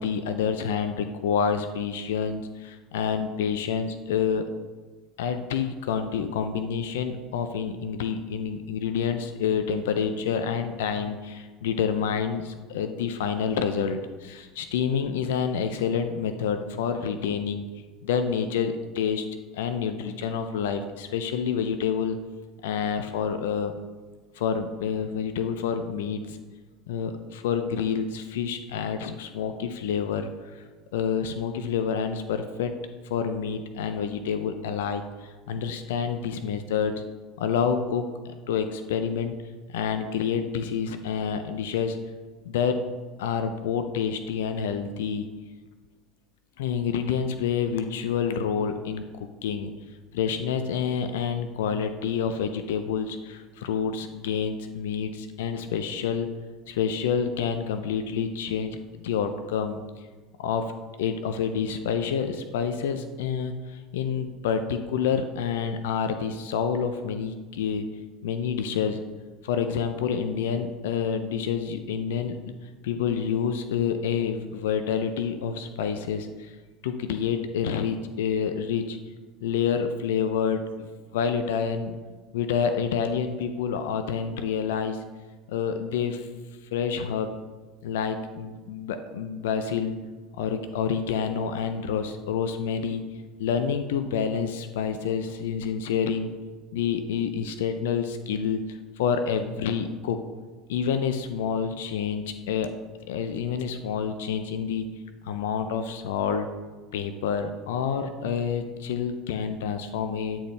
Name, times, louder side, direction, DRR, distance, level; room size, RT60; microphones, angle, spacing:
voice 1, 0.0-4.4 5.2-17.6 18.0-19.3 19.5-22.2 22.6-23.7 24.4-26.4 26.9-30.6 30.9-32.7 33.1-36.9 37.4-39.4 39.7-42.0 42.5-42.8 43.2-45.3 46.6-49.7 50.1-56.3 56.7-59.8 60.4-60.7 61.0-67.9 68.2-69.0 69.4-72.4 72.8-76.5 76.8-79.0 79.4-80.6 81.1-82.0 82.3-85.0 85.5-86.3 86.7-87.3 87.8-89.9 90.4-93.0 93.4-96.3 96.7-100.2 100.7-102.7 103.1-104.9 105.2-106.5 106.9-110.4, left 7 dB, 75° left, 8 dB, 0.4 m, -28 dB
9.5 x 4.3 x 3.3 m, 1.3 s
hypercardioid pair, 75°, 0 cm